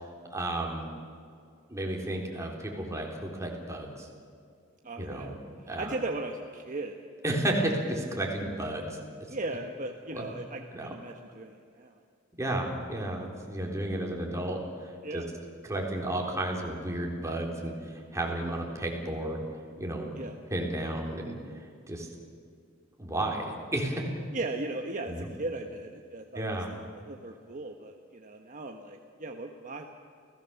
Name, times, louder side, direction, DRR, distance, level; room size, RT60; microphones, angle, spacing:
voice 1, 0.3-0.9 1.7-4.1 5.0-5.3 5.7-6.0 7.2-9.0 10.1-10.3 10.7-10.9 12.4-14.6 15.1-15.2 15.7-17.7 18.1-19.4 19.8-20.2 20.5-21.4 21.9-22.1 23.0-24.0 25.0-25.3 26.3-26.7, right 1 dB, 15° right, 0 dB, 3.9 m, -32 dB
voice 2, 4.8-5.3 5.6-6.9 9.3-11.9 15.0-15.3 20.2-20.3 24.3-26.6 27.1-29.9, right 2 dB, 40° right, 3 dB, 1.3 m, -37 dB
29.0 x 17.5 x 7.1 m, 2.3 s
head